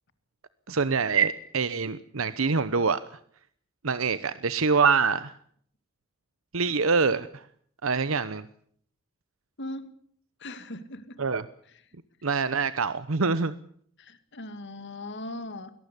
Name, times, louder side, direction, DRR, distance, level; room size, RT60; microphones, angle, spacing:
voice 1, 0.7-3.0 3.8-5.3 6.5-7.5 7.8-8.5 11.2-11.4 12.2-13.5, right 5 dB, 80° right, 14 dB, 0.9 m, -25 dB
voice 2, 9.6-9.9 10.4-11.2 14.0-15.7, left 1 dB, 60° left, 11 dB, 2.4 m, -39 dB
22.5 x 18.5 x 8.3 m, 0.63 s
head